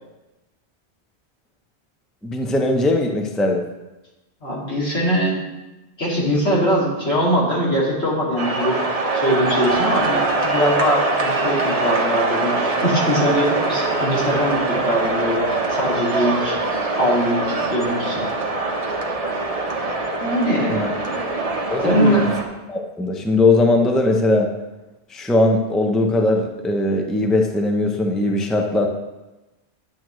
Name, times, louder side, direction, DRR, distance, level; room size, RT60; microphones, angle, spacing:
voice 1, 2.2-3.6 20.7-20.9 21.7-22.2 22.7-24.5 25.1-28.9, left 2 dB, ahead, 2 dB, 0.6 m, -19 dB
voice 2, 4.4-5.4 6.0-8.8 9.1-16.6 16.9-18.3 20.2-21.2 21.8-22.2, equal, 75° left, -6 dB, 2.8 m, -22 dB
sound 1, 8.4-22.4, right 3 dB, 35° right, 1.0 m, -23 dB
11.0 x 7.6 x 3.2 m, 1.1 s
omnidirectional pair, 1.1 m